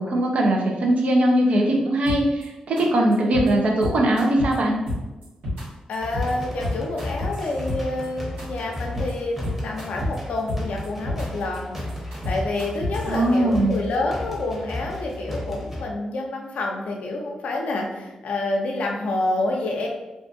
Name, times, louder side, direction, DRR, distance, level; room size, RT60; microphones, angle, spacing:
voice 1, 0.0-4.8 13.1-13.8, right 1 dB, 65° right, 0 dB, 0.6 m, -20 dB
sound 1, 2.1-2.4 2.8-2.9 3.1-3.5 3.8-4.5 4.9-5.6 5.9-6.3 6.6-8.1 8.4-8.5 8.7-9.1 9.4-10.2 10.5-11.3 11.5-13.1, left 1 dB, 85° right, 1.3 m, -29 dB
voice 2, 5.9-11.8 12.2-19.9, left 2 dB, 70° left, 0 dB, 0.5 m, -28 dB
sound 2, 6.0-15.8, left 1 dB, 10° right, 0.9 m, -34 dB
2.5 x 2.4 x 2.5 m, 1.0 s
supercardioid pair, 45°, 2 cm